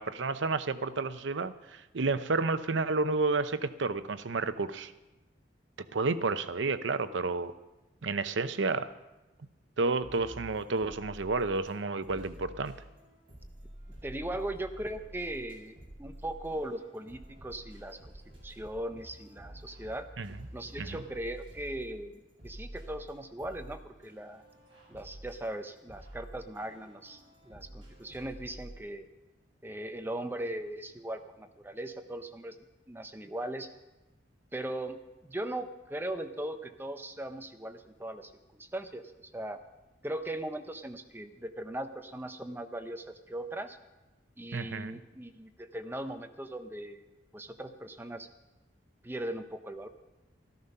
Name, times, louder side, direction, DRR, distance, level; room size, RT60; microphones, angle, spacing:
voice 1, 0.0-4.9 5.9-7.5 8.0-8.9 9.8-12.7 20.2-20.3 20.8-21.0 44.5-45.0, right 3 dB, 75° right, 12 dB, 0.7 m, -31 dB
sound 1, 10.0-11.7 12.0-28.7, right 1 dB, 30° right, 6.5 m, -49 dB
voice 2, 14.0-18.1 18.4-20.1 20.5-24.4 24.9-29.1 29.6-32.6 32.9-33.7 34.5-39.6 40.0-43.8 44.4-47.0 47.3-48.3 49.0-49.9, right 1 dB, 10° right, 7 dB, 0.7 m, -39 dB
13.5 x 13.5 x 5.5 m, 1.0 s
head